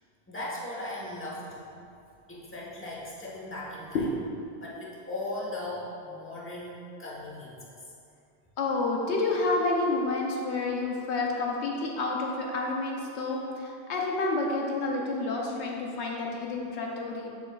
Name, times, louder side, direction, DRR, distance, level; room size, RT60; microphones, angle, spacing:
voice 1, 0.3-1.7 2.3-4.0 4.6-7.8, left 1 dB, 10° left, -6 dB, 1.0 m, -38 dB
voice 2, 8.6-17.3, left 3 dB, 85° left, -1 dB, 1.1 m, -29 dB
7.1 x 6.6 x 2.3 m, 2.6 s
omnidirectional pair, 1.1 m